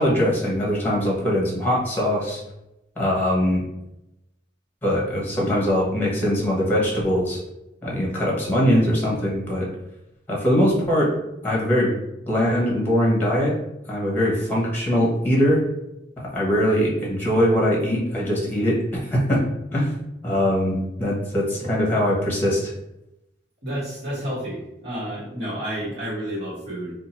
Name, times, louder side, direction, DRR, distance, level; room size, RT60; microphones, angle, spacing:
voice 1, 0.0-2.4 3.0-3.6 4.8-7.4 7.8-9.7 10.3-11.1 11.4-11.9 12.3-13.5 13.9-15.6 16.2-19.4 19.7-19.9 20.2-22.7, equal, 10° left, -4 dB, 1.0 m, -21 dB
voice 2, 23.6-26.9, right 1 dB, 70° right, -10 dB, 1.3 m, -30 dB
2.7 x 2.4 x 4.1 m, 0.88 s
head